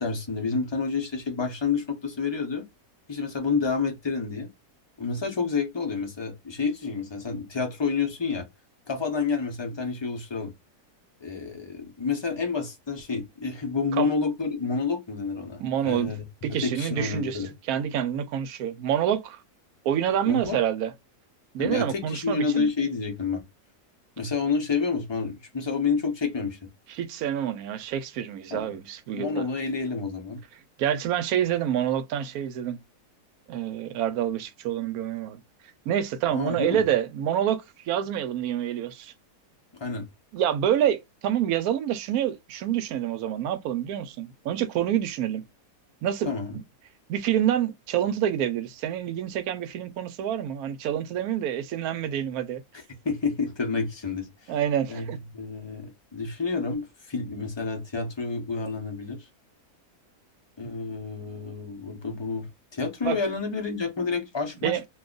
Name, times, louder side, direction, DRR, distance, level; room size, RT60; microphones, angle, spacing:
voice 1, 0.0-2.6 3.1-4.5 5.0-8.5 8.9-10.5 11.2-17.5 20.3-20.6 21.6-23.4 24.2-26.7 28.5-28.7 29.1-30.4 36.3-36.8 39.8-40.1 46.2-46.5 52.7-54.5 54.9-59.3 60.6-62.5 62.7-64.9, left 4 dB, 35° left, 0.4 m, -29 dB
voice 2, 15.6-16.1 16.4-19.4 19.8-20.9 21.5-22.7 26.9-29.4 30.8-32.8 33.5-35.4 35.9-39.1 40.3-45.4 46.0-46.6 47.1-52.6 54.5-55.2 63.0-63.2 64.6-64.8, right 10 dB, 70° right, 1.0 m, -27 dB
2.6 x 2.3 x 3.7 m
omnidirectional pair, 1.7 m